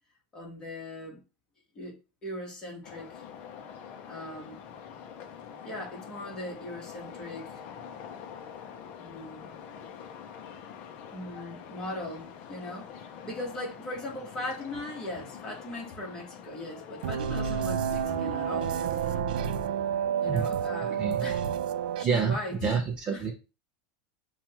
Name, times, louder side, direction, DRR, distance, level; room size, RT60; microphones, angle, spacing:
voice 1, 0.3-1.2 1.7-2.0 2.2-3.2 4.1-4.6 5.6-8.0 9.0-9.5 11.1-18.8 19.2-19.3 20.2-21.4 22.0-22.7 23.1-23.3, left 1 dB, 15° left, 1.3 m, -39 dB
sound 1, 2.8-19.2, left 8 dB, 35° left, 0.5 m, -45 dB
sound 2, 17.0-22.0, right 8 dB, 80° right, 0.4 m, -29 dB
voice 2, 22.0-23.3, right 5 dB, 25° right, 0.5 m, -28 dB
6.9 x 2.3 x 2.9 m
supercardioid pair, 175°, 5 cm